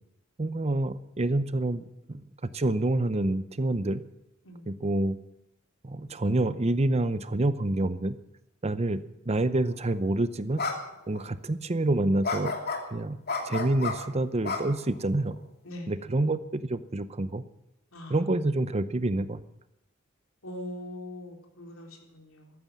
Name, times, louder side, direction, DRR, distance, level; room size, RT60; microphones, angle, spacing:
voice 1, 0.4-2.2 2.5-4.0 4.7-5.2 5.8-8.2 8.6-10.6 11.1-12.5 12.9-13.2 13.4-15.4 15.9-17.4 18.1-19.4, right 2 dB, 30° right, 14 dB, 0.7 m, -27 dB
voice 2, 4.4-4.8 15.7-15.9 17.9-18.2 20.4-22.5, left 1 dB, 70° left, 2 dB, 3.8 m, -41 dB
sound 1, 9.7-9.9 10.6-10.7 11.1-11.2 12.2-12.8 13.3-13.9 14.4-15.2, left 4 dB, 50° left, 2.9 m, -31 dB
15.0 x 13.0 x 7.5 m, 0.87 s
head